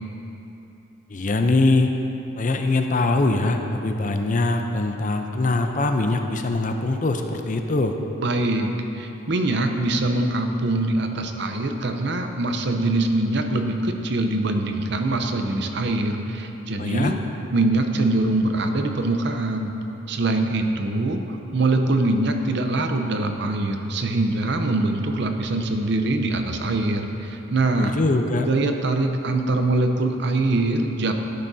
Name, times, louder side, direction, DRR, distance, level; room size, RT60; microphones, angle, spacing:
voice 1, 1.1-1.9 2.4-8.0 16.8-17.1 27.8-28.5, left 2 dB, 40° left, 5 dB, 0.6 m, -22 dB
voice 2, 8.2-17.2 17.5-19.7 20.1-28.0 28.4-31.1, right 2 dB, 55° right, 5 dB, 0.7 m, -23 dB
13.0 x 11.0 x 2.7 m, 3.0 s
head